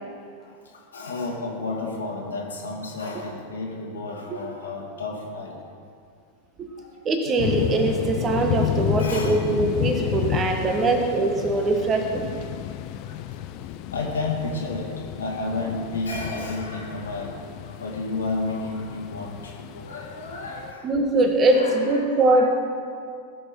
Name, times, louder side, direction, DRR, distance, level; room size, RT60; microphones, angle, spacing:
voice 1, 0.4-5.6 6.8-6.9 7.2-7.4 9.0-9.4 10.7-11.0 12.7-13.2 13.6-20.9 21.5-22.5, left 3 dB, 70° left, -2 dB, 1.8 m, -32 dB
voice 2, 7.0-12.3 20.8-22.5, right 2 dB, 25° right, 4 dB, 1.5 m, -22 dB
sound 1, 7.4-20.7, left 12 dB, 40° left, 0.5 m, -31 dB
18.5 x 6.5 x 4.6 m, 2.2 s
figure-of-eight pair, 90°, 0 cm